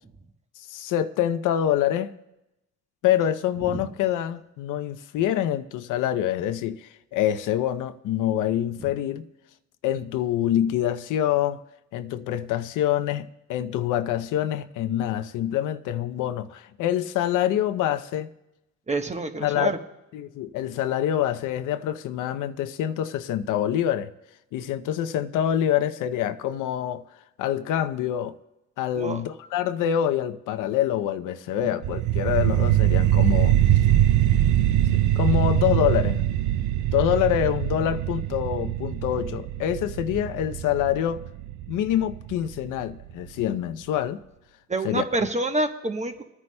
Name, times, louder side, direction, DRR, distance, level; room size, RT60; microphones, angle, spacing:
voice 1, 0.7-2.1 3.0-9.2 9.8-11.6 11.9-18.3 19.4-19.7 20.1-24.1 24.5-27.0 27.4-28.4 28.8-33.6 34.9-36.2 36.9-41.2 41.7-44.2 44.8-45.1, left 11 dB, 90° left, 0.7 m, -26 dB
voice 2, 18.9-19.8 29.0-29.2 44.7-46.2, right 2 dB, 25° right, 1.1 m, -27 dB
sound 1, 31.8-42.8, right 13 dB, 75° right, 0.5 m, -23 dB
27.0 x 9.7 x 2.2 m
cardioid pair, 90°, 30 cm